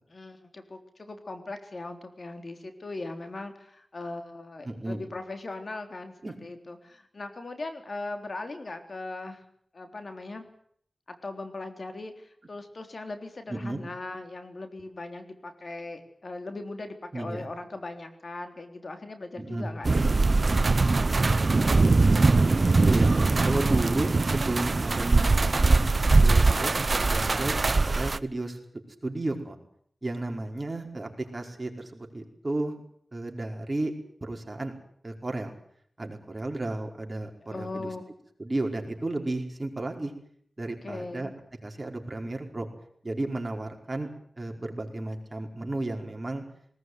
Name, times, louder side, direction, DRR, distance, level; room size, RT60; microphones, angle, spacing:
voice 1, 0.1-6.1 6.4-9.4 9.7-10.4 11.1-20.1 20.4-21.7 37.4-38.0 40.8-41.3, left 2 dB, 60° left, 6 dB, 3.7 m, -39 dB
voice 2, 4.6-5.1 6.2-6.4 13.5-13.8 17.1-17.5 19.4-19.7 20.9-21.0 22.8-25.8 26.2-27.6 27.9-28.6 29.0-29.6 30.0-32.7 33.1-33.9 34.2-34.7 35.0-35.5 36.0-37.9 38.4-40.1 40.6-41.3 41.6-42.7 43.0-44.1 44.4-46.4, right 2 dB, 35° right, 2 dB, 5.0 m, -33 dB
sound 1, 19.8-28.2, right 3 dB, 55° right, 0.9 m, -22 dB
20.0 x 19.0 x 9.6 m, 0.65 s
cardioid pair, 50°, 0 cm